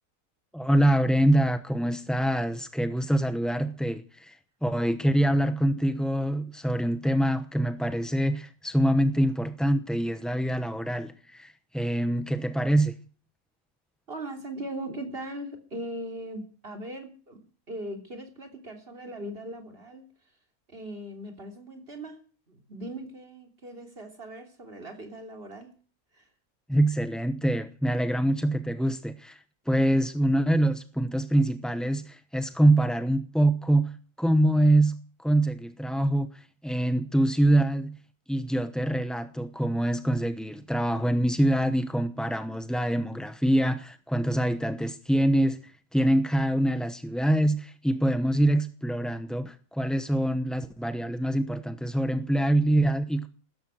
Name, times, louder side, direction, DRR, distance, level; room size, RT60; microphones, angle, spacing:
voice 1, 0.5-12.9 26.7-33.9 34.2-38.0 38.3-53.3, right 1 dB, ahead, 10 dB, 0.6 m, -25 dB
voice 2, 14.1-17.4 17.7-20.0 20.7-22.2 22.5-25.7 26.1-26.3, right 1 dB, 40° right, 5 dB, 3.4 m, -39 dB
16.5 x 13.5 x 6.4 m, 0.41 s
omnidirectional pair, 1.5 m